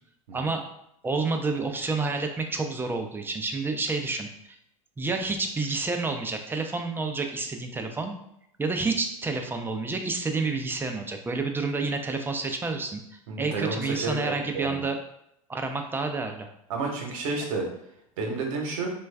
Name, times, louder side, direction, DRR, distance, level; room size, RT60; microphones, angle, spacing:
voice 1, 1.0-4.3 5.0-8.1 8.6-15.0 15.5-16.5, right 3 dB, 10° right, 4 dB, 0.4 m, -29 dB
voice 2, 13.3-14.8 16.7-17.7 18.2-18.9, right 3 dB, 70° right, 1 dB, 1.0 m, -31 dB
3.1 x 2.3 x 3.3 m, 0.77 s
hypercardioid pair, 95°, 18 cm